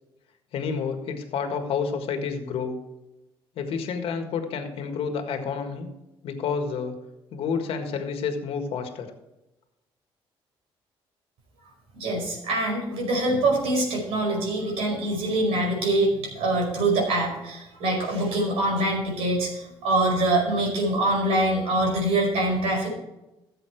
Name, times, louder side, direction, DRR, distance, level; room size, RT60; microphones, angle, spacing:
voice 1, 0.5-2.8 3.6-5.9 6.2-7.0 7.3-9.1, left 6 dB, 70° left, 6 dB, 1.7 m, -29 dB
voice 2, 11.9-22.9, right 1 dB, 80° right, 0 dB, 5.1 m, -24 dB
14.0 x 7.8 x 4.6 m, 0.96 s
cardioid pair, 90°, 10 cm